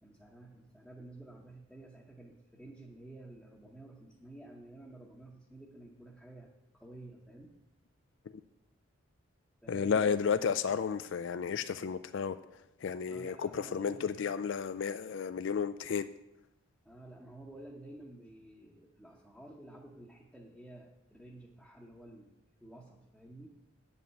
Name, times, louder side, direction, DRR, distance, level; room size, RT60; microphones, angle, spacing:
voice 1, 0.0-7.6 9.6-10.2 13.1-14.2 16.8-22.3 22.6-23.8, right 1 dB, ahead, -3 dB, 0.8 m, -52 dB
voice 2, 9.7-16.1, left 6 dB, 55° left, 12 dB, 0.3 m, -33 dB
9.1 x 5.4 x 7.6 m, 0.90 s
head